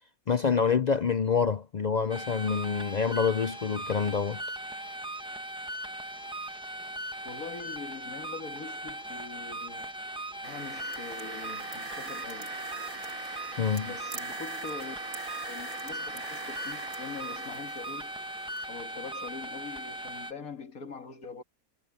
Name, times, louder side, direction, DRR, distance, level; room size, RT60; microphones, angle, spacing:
voice 1, 0.3-4.4 13.6-13.9, left 6 dB, 55° left, 0.4 m, -27 dB
sound 1, 2.1-20.3, right 1 dB, 5° right, 1.1 m, -39 dB
voice 2, 7.2-9.9 10.4-12.6 13.8-15.0 15.4-18.1 18.7-21.4, left 5 dB, 75° left, 2.4 m, -43 dB
sound 2, 10.4-18.7, right 4 dB, 75° right, 3.1 m, -42 dB
omnidirectional pair, 1.5 m